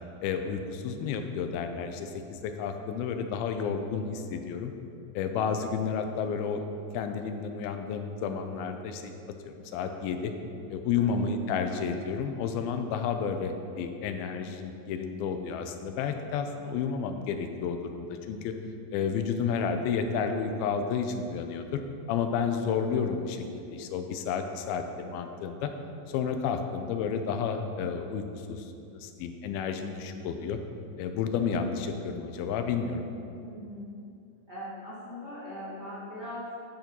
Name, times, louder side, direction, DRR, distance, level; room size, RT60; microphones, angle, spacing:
voice 1, 0.2-4.7 5.2-6.7 6.9-9.1 9.4-10.3 10.7-18.5 18.9-21.8 22.1-25.7 26.1-30.6 31.0-33.1, left 6 dB, 85° left, 6 dB, 2.4 m, -31 dB
voice 2, 33.3-33.9 34.5-36.5, equal, 45° right, -10 dB, 1.5 m, -40 dB
11.0 x 4.4 x 5.2 m, 2.5 s
omnidirectional pair, 4.3 m